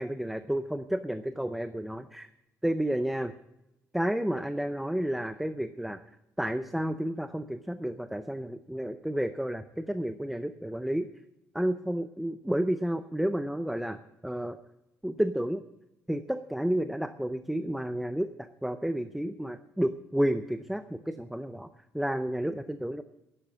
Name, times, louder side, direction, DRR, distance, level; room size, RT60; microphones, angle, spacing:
voice 1, 0.0-2.3 2.6-3.3 3.9-6.0 6.4-11.1 11.5-14.6 15.0-15.6 16.1-21.7 21.9-23.0, right 1 dB, 5° right, 10 dB, 0.5 m, -31 dB
11.0 x 10.5 x 8.6 m, 0.93 s
cardioid pair, 155°, 6 cm